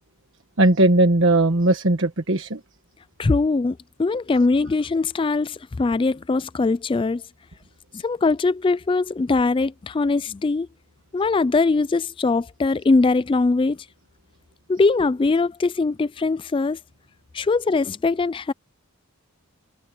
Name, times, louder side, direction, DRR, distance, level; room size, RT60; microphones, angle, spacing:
voice 1, 0.6-2.6, right 2 dB, 60° right, 1.4 m, -18 dB
voice 2, 3.2-7.2 7.9-10.7 11.1-13.8 14.7-16.8 17.3-18.5, left 3 dB, 25° left, 0.3 m, -21 dB
head